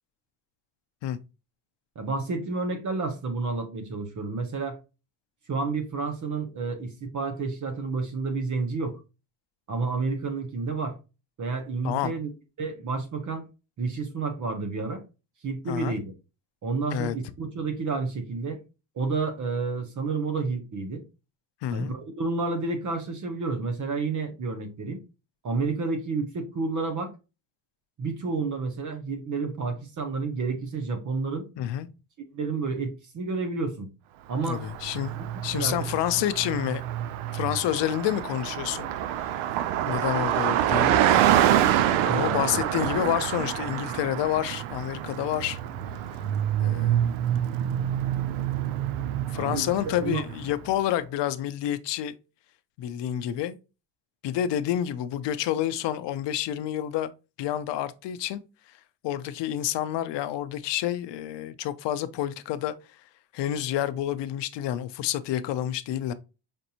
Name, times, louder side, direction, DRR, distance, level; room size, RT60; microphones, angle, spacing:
voice 1, 2.0-4.8 5.5-9.0 9.7-11.0 11.4-12.3 12.6-13.5 13.8-15.0 15.4-16.1 16.6-18.6 19.0-21.0 21.7-25.0 25.4-27.1 28.0-31.5 32.3-33.9 34.3-34.6 35.5-35.9 42.0-42.7 49.3-50.2, right 4 dB, 40° right, 0.9 m, -30 dB
voice 2, 21.6-21.9 31.6-31.9 34.5-35.2 35.4-36.8 37.3-38.9 39.9-40.9 42.1-45.6 46.6-47.1 49.3-52.1 52.8-53.6 54.2-57.1 57.4-58.4 59.0-62.7 63.3-66.1, left 11 dB, 65° left, 0.6 m, -28 dB
Car passing by, 34.5-50.5, right 11 dB, 85° right, 0.6 m, -26 dB
5.2 x 2.5 x 2.8 m
cardioid pair, 130°, 47 cm